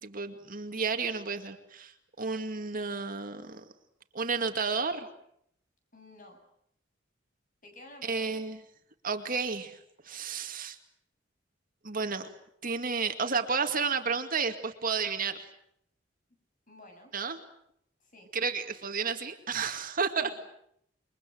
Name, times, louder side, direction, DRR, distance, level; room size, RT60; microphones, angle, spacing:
voice 1, 0.0-1.9 2.2-3.6 4.1-5.1 8.0-8.6 9.0-9.8 10.0-10.8 11.8-12.3 12.6-15.5 17.1-17.4 18.3-20.4, right 5 dB, 50° right, 6 dB, 2.2 m, -31 dB
voice 2, 5.9-6.4 7.6-8.5 16.7-17.1 18.1-18.3 20.2-20.4, left 2 dB, 45° left, 4 dB, 7.8 m, -51 dB
29.0 x 23.0 x 7.9 m, 0.72 s
head